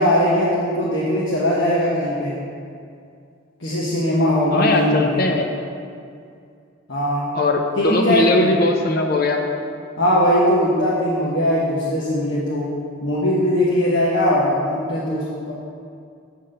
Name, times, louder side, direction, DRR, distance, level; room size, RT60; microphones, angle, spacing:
voice 1, 0.0-2.3 3.6-5.2 6.9-7.3 7.8-8.5 10.0-12.7 13.0-15.5, left 1 dB, 65° left, -7 dB, 1.1 m, -20 dB
voice 2, 4.5-5.5 7.3-9.4, left 2 dB, 45° left, 3 dB, 0.7 m, -19 dB
8.0 x 4.1 x 6.6 m, 2.3 s
head